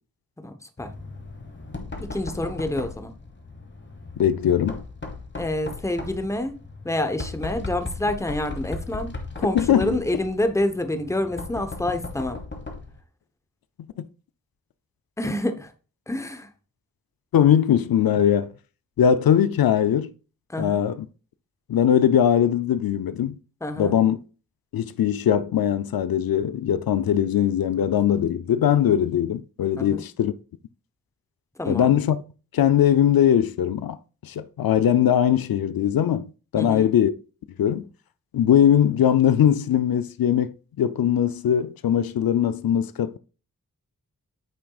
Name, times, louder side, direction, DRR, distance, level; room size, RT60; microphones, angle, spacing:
voice 1, 0.4-0.9 2.0-3.1 5.3-6.6 6.8-12.4 15.2-15.7 16.1-16.5 20.5-20.8 23.6-24.0 29.8-30.0 31.6-32.0 36.6-36.9, left 1 dB, 10° left, 0.9 m, -28 dB
Knock, 0.8-13.0, left 3 dB, 30° left, 1.3 m, -37 dB
voice 2, 4.2-4.8 9.5-10.0 14.0-14.1 17.3-18.5 19.0-20.1 20.6-21.1 21.7-23.4 23.8-24.2 24.7-30.3 31.7-32.2 32.5-34.0 34.2-37.1 37.6-37.9 38.3-40.5 40.8-43.2, left 9 dB, 85° left, 0.5 m, -20 dB
8.6 x 6.0 x 2.4 m
wide cardioid pair, 110°, 35 cm